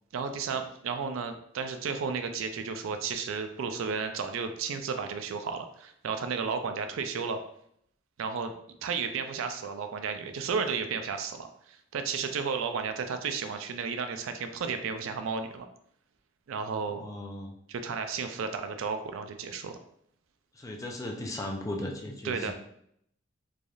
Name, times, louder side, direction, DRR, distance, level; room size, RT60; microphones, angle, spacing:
voice 1, 0.1-7.4 8.2-15.7 16.5-17.0 17.7-19.8 22.2-22.5, right 5 dB, 85° right, 7 dB, 0.4 m, -33 dB
voice 2, 16.9-17.6 20.5-22.5, left 1 dB, 15° left, 1 dB, 0.3 m, -36 dB
3.3 x 2.6 x 2.3 m, 0.69 s
head